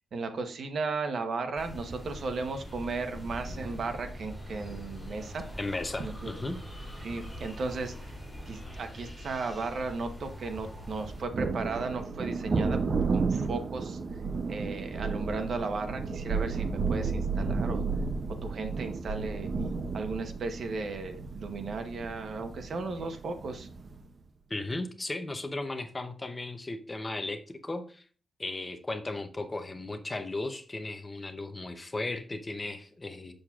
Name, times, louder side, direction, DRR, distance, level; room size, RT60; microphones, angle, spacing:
voice 1, 0.1-5.4 6.0-6.3 7.0-8.2 8.5-12.8 13.1-14.0 14.5-17.8 18.4-19.5 19.9-23.7, right 3 dB, 60° right, 6 dB, 0.8 m, -35 dB
sound 1, 1.5-11.2, equal, ahead, 2.8 m, -43 dB
voice 2, 5.6-6.6 24.5-28.0 28.4-33.3, left 2 dB, 20° left, 8 dB, 0.6 m, -36 dB
Thunder, 10.9-24.1, right 4 dB, 40° right, 0.4 m, -32 dB
7.3 x 6.4 x 2.3 m, 0.41 s
wide cardioid pair, 165°, 0 cm